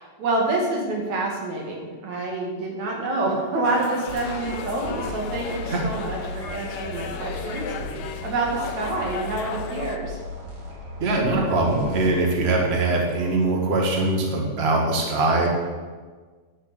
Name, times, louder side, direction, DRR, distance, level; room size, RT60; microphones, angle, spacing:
voice 1, 0.0-7.7 8.2-10.2, right 2 dB, 65° right, -1 dB, 3.6 m, -27 dB
sound 1, 3.6-10.0, left 6 dB, 70° left, 1.6 m, -35 dB
sound 2, 4.1-13.1, equal, 40° right, 3.4 m, -37 dB
voice 2, 11.0-15.5, right 2 dB, 25° right, -1 dB, 1.8 m, -22 dB
13.0 x 6.4 x 8.6 m, 1.5 s
omnidirectional pair, 3.5 m